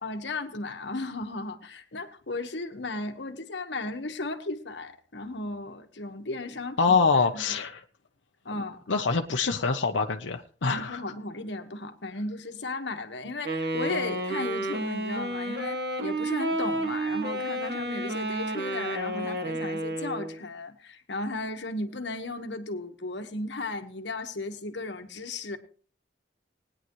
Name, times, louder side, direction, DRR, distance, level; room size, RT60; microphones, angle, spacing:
voice 1, 0.0-7.0 7.3-7.4 8.4-8.8 10.6-25.6, left 2 dB, 70° left, 1.5 m, -35 dB
voice 2, 6.8-7.8 8.9-11.0, left 4 dB, 90° left, 0.9 m, -25 dB
Wind instrument woodwind instrument, 13.4-20.4, right 1 dB, 55° right, 2.1 m, -31 dB
19.5 x 10.0 x 3.1 m
head